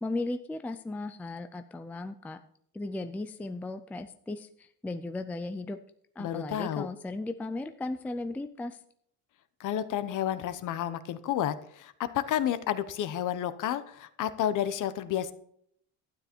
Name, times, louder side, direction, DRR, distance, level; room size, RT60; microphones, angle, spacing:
voice 1, 0.0-2.4 2.7-5.8 6.2-8.8, left 2 dB, 5° left, 8 dB, 0.4 m, -36 dB
voice 2, 6.2-6.9 9.6-15.3, left 11 dB, 50° left, 13 dB, 1.0 m, -31 dB
12.0 x 9.5 x 4.5 m, 0.68 s
cardioid pair, 145°, 38 cm